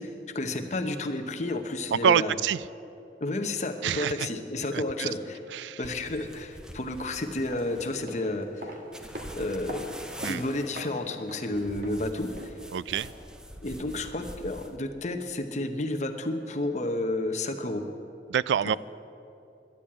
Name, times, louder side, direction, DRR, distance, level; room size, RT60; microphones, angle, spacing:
voice 1, 0.0-2.3 3.2-5.4 5.8-8.8 9.4-9.9 10.3-12.5 13.6-17.9, left 2 dB, 40° left, 5 dB, 0.9 m, -31 dB
voice 2, 1.9-2.6 3.8-4.3 4.7-5.1 5.5-5.8 10.2-10.4 12.7-13.1 18.3-18.8, right 8 dB, 90° right, 19 dB, 0.3 m, -26 dB
sound 1, 5.8-8.1 8.9-10.8 11.5-14.8, equal, 5° right, 0.6 m, -44 dB
Male dress shoes heavy walk grows distant, 7.3-13.3 13.6-13.7, equal, 55° right, 1.5 m, -43 dB
11.0 x 10.5 x 8.6 m, 2.8 s
head